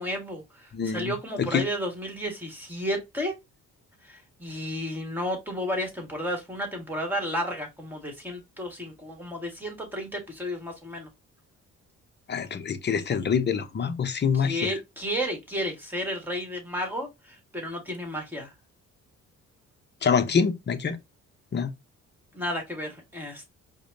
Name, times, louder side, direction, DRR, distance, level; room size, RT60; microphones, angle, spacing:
voice 1, 0.0-3.4 4.0-11.1 14.3-18.5 22.3-23.5, equal, 5° right, 1.5 m, -32 dB
voice 2, 0.7-1.6 12.3-14.7 20.0-21.0 21.5-21.7, left 6 dB, 35° left, 0.7 m, -26 dB
4.7 x 2.2 x 2.6 m
cardioid pair, 90°, 30 cm